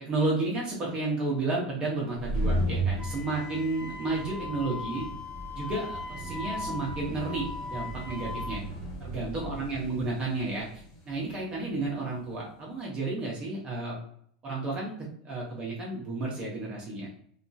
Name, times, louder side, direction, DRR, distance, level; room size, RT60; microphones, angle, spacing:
voice 1, 0.0-5.2 5.5-8.6 9.0-14.0 14.4-14.9 15.2-17.1, right 2 dB, 25° right, -4 dB, 0.7 m, -32 dB
sound 1, 2.0-12.5, right 1 dB, 65° left, 1.1 m, -36 dB
Wind instrument woodwind instrument, 3.0-8.6, left 3 dB, 25° left, 1.0 m, -39 dB
2.7 x 2.3 x 2.6 m, 0.63 s
supercardioid pair, 135°, 4 cm